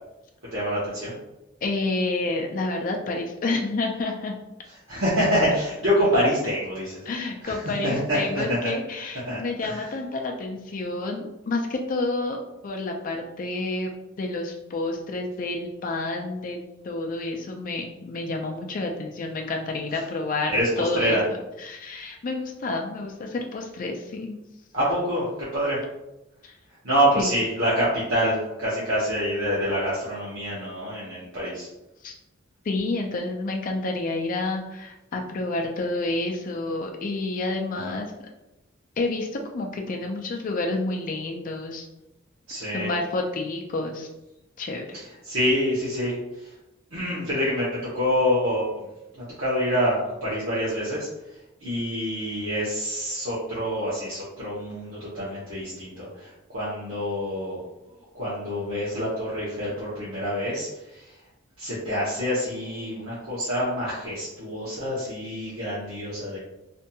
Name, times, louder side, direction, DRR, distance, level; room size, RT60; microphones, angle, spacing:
voice 1, 0.5-1.1 4.9-7.0 7.4-8.2 8.5-8.7 9.2-9.9 19.9-20.0 20.5-21.2 24.7-25.8 26.8-31.7 37.7-37.9 42.5-42.9 44.9-46.5 46.9-48.9 49.1-51.1 51.6-57.6 58.1-61.1 61.6-66.4, equal, 70° right, -9 dB, 0.8 m, -26 dB
voice 2, 1.6-4.3 7.1-13.9 14.2-16.6 16.8-20.5 20.8-21.2 21.6-24.4 26.4-26.5 27.2-27.3 32.0-32.1 32.7-38.1 39.0-39.3 39.5-41.9 42.7-44.1 44.6-45.0, left 2 dB, 40° left, 2 dB, 0.4 m, -29 dB
2.8 x 2.6 x 2.2 m, 0.93 s
head